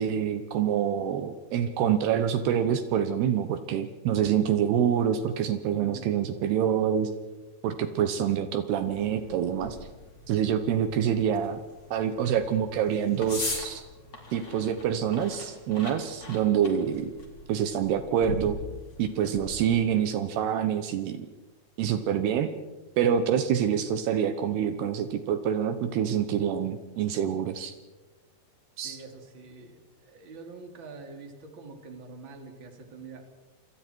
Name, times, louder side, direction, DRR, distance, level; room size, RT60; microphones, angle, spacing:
voice 1, 0.0-7.1 7.6-9.8 10.3-11.6 11.9-13.8 14.3-17.1 17.5-18.6 19.0-21.3 21.8-22.5 23.0-27.7 28.8-29.0, right 9 dB, 75° right, 9 dB, 3.1 m, -26 dB
voice 2, 5.7-6.1 28.8-33.3, right 3 dB, 30° right, 4 dB, 3.2 m, -45 dB
sound 1, 8.8-19.8, left 2 dB, 25° left, 4.3 m, -41 dB
27.5 x 27.5 x 4.6 m, 1.2 s
omnidirectional pair, 4.9 m